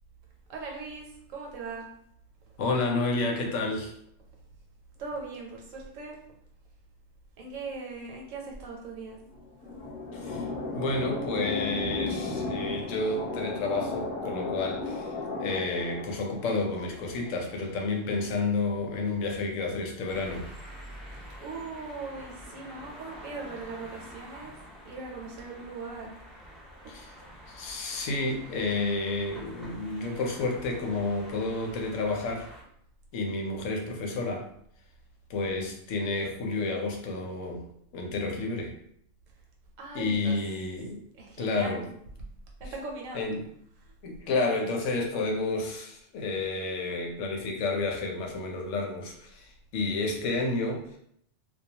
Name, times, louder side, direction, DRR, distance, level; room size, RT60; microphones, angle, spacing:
voice 1, 0.5-1.9 5.0-6.2 7.4-9.2 21.1-24.5 24.8-26.2 26.5-26.9 28.5-28.7 39.8-40.4 41.1-42.0 42.6-43.3 43.7-43.9, right 3 dB, 80° right, 0 dB, 1.0 m, -40 dB
voice 2, 2.6-3.9 10.1-10.5 10.7-15.1 15.4-20.5 26.9-27.1 27.5-32.5 33.1-34.5 35.3-37.7 37.9-38.7 39.9-41.0 41.4-41.8 43.1-43.5 44.0-51.0, left 3 dB, 75° left, 1 dB, 0.9 m, -30 dB
sound 1, 9.2-17.7, left 3 dB, 30° left, 0.7 m, -35 dB
sound 2, 20.1-32.6, equal, ahead, 0.3 m, -47 dB
2.3 x 2.2 x 2.7 m, 0.69 s
omnidirectional pair, 1.3 m